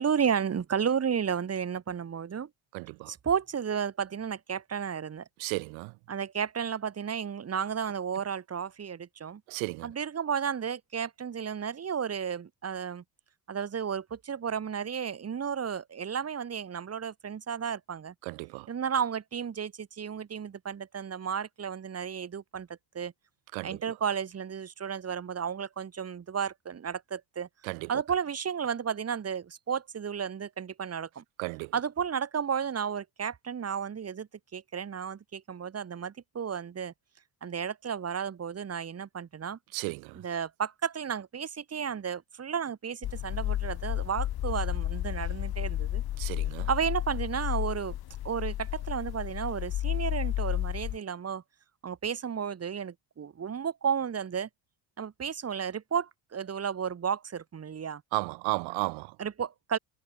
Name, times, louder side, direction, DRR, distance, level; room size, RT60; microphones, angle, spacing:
voice 1, 0.0-2.5 3.1-5.2 6.1-9.4 9.8-13.0 13.5-18.1 18.7-22.7 22.9-23.1 23.6-27.5 27.9-31.2 31.7-36.9 37.4-39.6 40.1-46.0 46.7-48.0 48.2-51.4 51.8-54.5 55.0-58.0 59.2-59.8, right 7 dB, 30° right, 7.6 m, -33 dB
voice 2, 2.7-3.1 5.4-5.9 9.5-9.9 18.3-18.7 23.5-23.8 27.6-27.9 31.4-31.7 39.7-40.2 46.2-46.7 58.1-59.1, right 30 dB, 90° right, 3.2 m, -33 dB
sound 1, 43.0-51.0, left 13 dB, 50° left, 4.1 m, -32 dB
cardioid pair, 130°, 46 cm